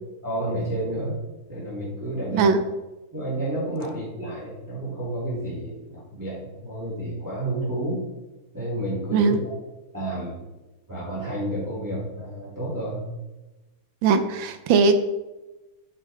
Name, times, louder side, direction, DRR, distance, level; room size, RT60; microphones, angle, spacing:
voice 1, 0.2-1.1 1.5-2.5 3.1-8.0 8.5-9.5 9.9-10.4 10.9-13.0, right 1 dB, 10° right, -9 dB, 2.9 m, -30 dB
voice 2, 14.0-14.9, right 5 dB, 70° right, 9 dB, 1.3 m, -19 dB
9.4 x 6.7 x 3.3 m, 1.1 s
omnidirectional pair, 2.4 m